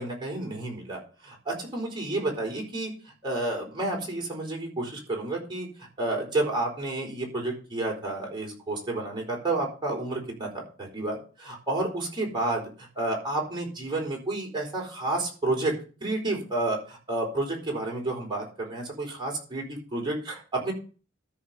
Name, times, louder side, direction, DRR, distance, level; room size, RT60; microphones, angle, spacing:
voice 1, 0.0-2.9 3.2-5.7 6.0-15.7 16.0-20.7, right 2 dB, 25° right, -1 dB, 4.3 m, -30 dB
13.5 x 4.9 x 5.5 m, 0.36 s
head